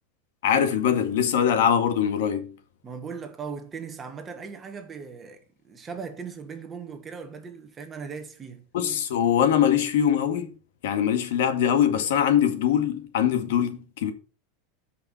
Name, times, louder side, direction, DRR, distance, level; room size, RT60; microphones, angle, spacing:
voice 1, 0.4-2.5 8.7-10.5 10.8-14.1, left 9 dB, 75° left, 2.0 m, -22 dB
voice 2, 2.8-8.6, right 5 dB, 20° right, 1.6 m, -38 dB
13.0 x 5.9 x 4.4 m
supercardioid pair, 160°, 0 cm